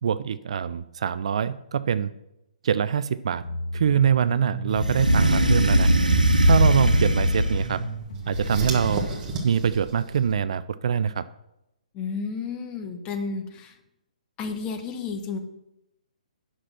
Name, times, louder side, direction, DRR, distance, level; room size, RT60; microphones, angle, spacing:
voice 1, 0.0-2.1 2.6-3.4 3.7-5.9 6.4-7.8 8.3-9.1 9.4-11.2, right 8 dB, 50° right, 15 dB, 0.4 m, -24 dB
sound 1, 3.4-8.7, right 1 dB, 55° left, 3.0 m, -34 dB
sound 2, 4.7-7.8 8.3-9.2, right 1 dB, 80° right, 1.1 m, -20 dB
sound 3, 5.0-10.3, right 3 dB, 20° right, 1.6 m, -37 dB
voice 2, 11.9-13.8 14.4-15.4, left 5 dB, 20° left, 6 dB, 1.1 m, -32 dB
9.8 x 6.2 x 5.8 m, 0.87 s
figure-of-eight pair, 130°, 4 cm